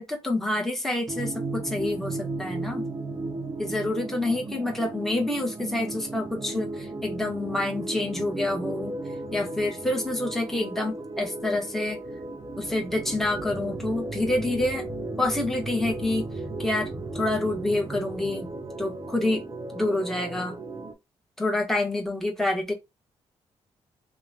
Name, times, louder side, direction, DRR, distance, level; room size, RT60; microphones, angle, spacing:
voice 1, 0.0-2.9 3.6-8.9 9.3-12.0 12.6-14.9 15.2-16.3 16.6-16.9 17.1-18.5 18.8-19.4 19.7-20.6 21.4-22.7, left 2 dB, 5° left, 0.9 m, -27 dB
sound 1, 1.1-20.9, right 2 dB, 30° right, 0.4 m, -35 dB
2.9 x 2.1 x 2.2 m
cardioid pair, 95°, 11 cm